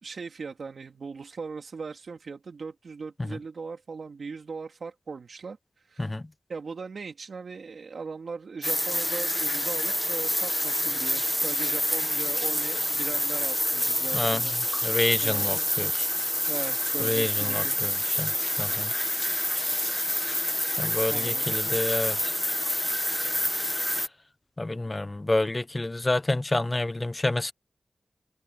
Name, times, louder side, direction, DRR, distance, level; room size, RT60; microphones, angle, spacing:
voice 1, 0.0-5.6 5.9-6.1 6.5-14.6 15.2-15.7 16.5-17.8 21.1-21.5, right 4 dB, 90° right, 3.0 m, -39 dB
sound 1, 8.6-24.1, equal, 10° left, 1.0 m, -27 dB
voice 2, 14.1-14.5 14.8-16.1 17.0-18.3 18.6-18.9 20.8-22.3 24.6-27.5, left 2 dB, 30° left, 1.0 m, -28 dB
wide cardioid pair, 70°, 0 cm